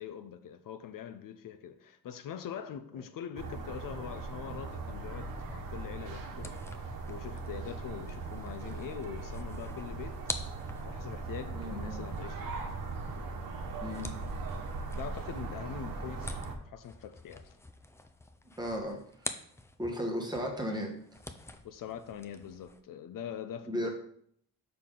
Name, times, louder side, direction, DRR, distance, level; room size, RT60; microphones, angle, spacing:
voice 1, 0.0-10.2 10.8-12.6 14.9-16.4 16.7-17.6 21.6-23.9, left 8 dB, 65° left, 0.6 m, -43 dB
sound 1, 3.4-16.6, right 3 dB, 75° right, 1.2 m, -39 dB
sound 2, 6.4-20.0 20.3-22.8, left 2 dB, 10° left, 0.3 m, -47 dB
voice 2, 11.5-12.0 13.8-14.1 18.6-19.3 19.8-20.9 23.7-23.9, equal, 10° right, 1.2 m, -35 dB
6.7 x 5.9 x 3.8 m
wide cardioid pair, 170°, 35 cm